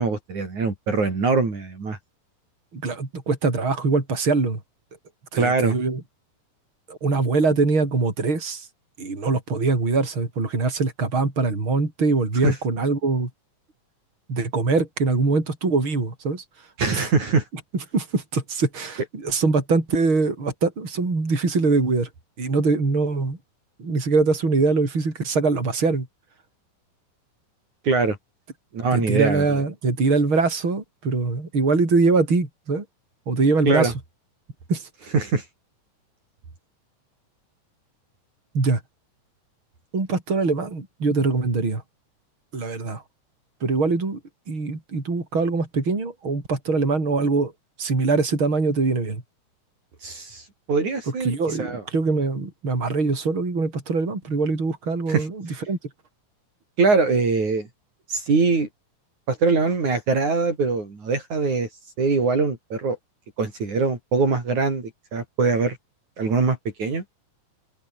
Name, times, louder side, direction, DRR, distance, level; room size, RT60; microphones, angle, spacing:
voice 1, 0.0-2.0 5.4-5.8 12.4-12.5 16.8-17.4 27.8-28.2 28.7-29.4 33.7-33.9 35.1-35.4 50.0-50.4 50.7-51.3 51.6-51.8 55.1-55.3 56.8-57.7 58.1-58.7 59.3-61.7 62.0-63.0 63.4-65.8 66.2-67.0, right 4 dB, 55° right, 6.6 m, -22 dB
voice 2, 2.7-4.6 5.3-6.0 6.9-8.7 9.0-13.3 14.3-16.4 16.9-17.1 17.7-22.1 22.4-23.4 23.8-26.1 28.9-32.8 33.3-33.9 34.7-34.9 38.5-38.8 39.9-41.8 42.5-43.0 43.6-44.2 44.5-47.5 47.8-49.2 51.2-55.8, right 3 dB, 35° right, 6.4 m, -23 dB
open air
omnidirectional pair, 3.9 m